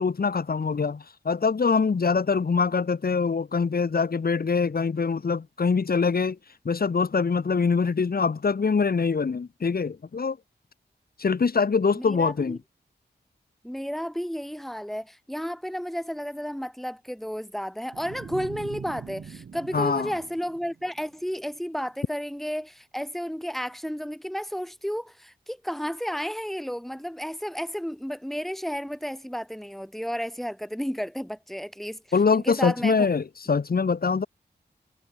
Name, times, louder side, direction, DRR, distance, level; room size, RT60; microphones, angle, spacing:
voice 1, 0.0-6.4 6.6-10.4 11.2-12.6 19.7-20.1 32.1-34.3, left 5 dB, 60° left, 3.1 m, -24 dB
voice 2, 11.9-12.6 13.6-32.0 32.3-33.1, equal, ahead, 3.2 m, -32 dB
sound 1, 17.9-21.2, right 6 dB, 85° right, 7.5 m, -42 dB
wide cardioid pair, 80°, 18 cm